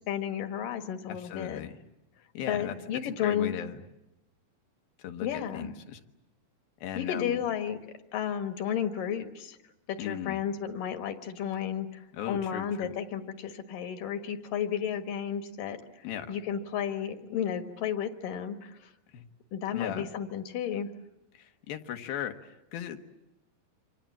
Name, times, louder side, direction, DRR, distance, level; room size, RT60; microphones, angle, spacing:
voice 1, 0.1-1.6 2.5-3.6 5.2-5.7 6.9-7.8 8.1-9.6 9.9-18.9 19.5-20.9, left 8 dB, 70° left, 8 dB, 3.1 m, -33 dB
voice 2, 1.1-1.7 2.3-2.7 3.0-3.8 5.0-6.0 6.8-7.4 10.0-10.4 12.1-12.9 16.0-16.3 19.1-19.2 19.7-20.1 21.3-23.0, left 10 dB, 90° left, 6 dB, 3.3 m, -37 dB
29.0 x 25.5 x 7.3 m, 0.92 s
omnidirectional pair, 4.1 m